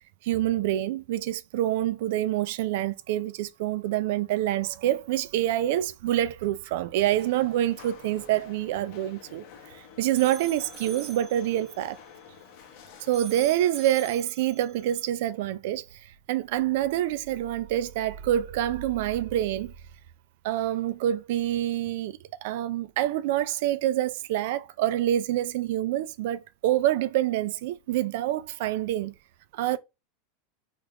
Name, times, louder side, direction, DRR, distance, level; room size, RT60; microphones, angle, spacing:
voice 1, 0.2-9.4 9.7-12.0 13.0-19.7 20.4-29.1 29.5-29.8, right 13 dB, 65° right, 0.3 m, -27 dB
sound 1, 7.1-13.2, left 7 dB, 55° left, 0.8 m, -50 dB
sound 2, 9.7-12.8 13.1-15.1, right 6 dB, 5° right, 0.5 m, -45 dB
3.4 x 2.4 x 2.9 m
supercardioid pair, 150°, 0 cm